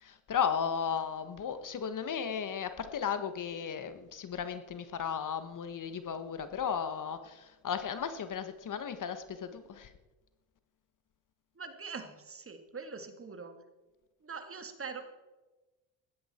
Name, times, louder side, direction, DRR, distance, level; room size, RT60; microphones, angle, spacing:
voice 1, 0.0-9.9, left 7 dB, 45° left, 10 dB, 1.3 m, -35 dB
voice 2, 11.6-13.6 14.2-15.1, right 5 dB, 30° right, 7 dB, 2.1 m, -43 dB
16.0 x 12.0 x 4.4 m, 1.1 s
supercardioid pair, 80°, 44 cm